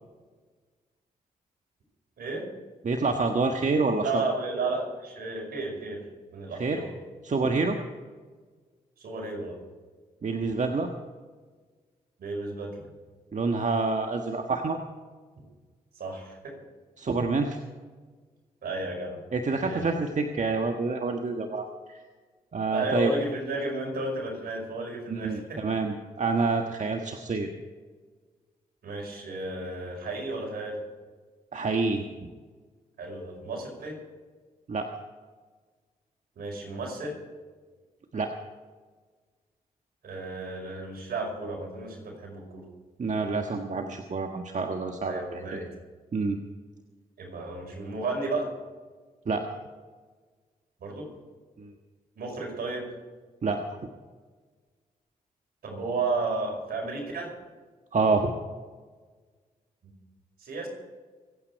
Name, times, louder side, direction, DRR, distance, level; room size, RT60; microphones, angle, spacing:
voice 1, 2.2-2.5 4.0-6.1 6.3-6.9 9.0-9.6 12.2-12.8 16.0-16.6 18.6-19.2 19.6-19.9 22.7-25.6 28.8-30.8 33.0-34.0 36.4-37.2 40.0-42.6 45.0-45.7 47.2-48.5 50.8-51.1 52.2-52.9 55.6-57.3 59.8-59.9 60.4-60.7, right 2 dB, 75° right, 1 dB, 5.2 m, -33 dB
voice 2, 2.8-4.2 6.6-6.8 7.2-7.8 10.2-10.9 13.3-14.8 17.0-17.6 19.3-22.0 22.5-23.1 25.1-27.5 31.5-32.0 34.7-34.9 38.1-38.3 43.0-45.6 46.1-46.4 49.2-49.4 51.6-51.7 53.4-53.6 57.9-58.3, right 3 dB, 50° right, 4 dB, 1.5 m, -27 dB
24.5 x 9.1 x 4.7 m, 1.4 s
supercardioid pair, 55°, 16 cm